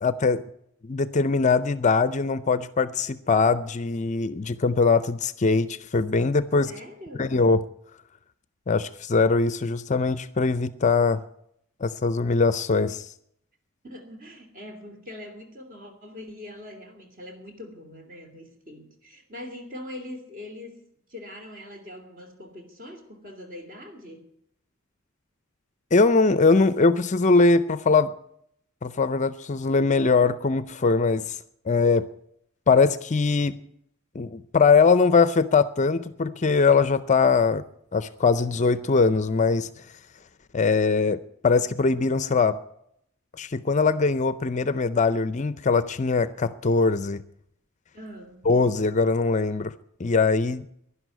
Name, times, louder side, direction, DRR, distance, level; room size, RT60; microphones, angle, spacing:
voice 1, 0.0-0.4 0.8-6.7 7.2-7.6 8.7-11.2 11.8-13.1 25.9-28.1 28.8-31.4 31.7-32.0 32.7-33.6 34.1-37.6 37.9-39.7 40.5-42.6 43.4-47.2 48.5-49.7 50.0-50.6, left 4 dB, 35° left, 14 dB, 0.5 m, -21 dB
voice 2, 6.6-7.3 13.8-20.8 21.1-24.3 47.9-48.5, left 1 dB, 40° right, 5 dB, 2.9 m, -42 dB
11.5 x 11.0 x 9.1 m, 0.72 s
head